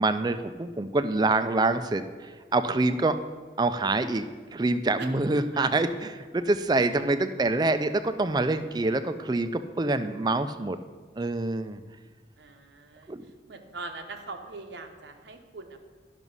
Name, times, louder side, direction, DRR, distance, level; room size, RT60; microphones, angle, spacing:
voice 1, 0.0-3.2 3.6-10.8 11.2-11.8 13.1-13.2, right 2 dB, 25° right, 11 dB, 0.4 m, -26 dB
voice 2, 12.4-13.1 13.5-15.9, right 3 dB, 85° right, 5 dB, 0.9 m, -41 dB
11.0 x 6.0 x 5.4 m, 1.5 s
head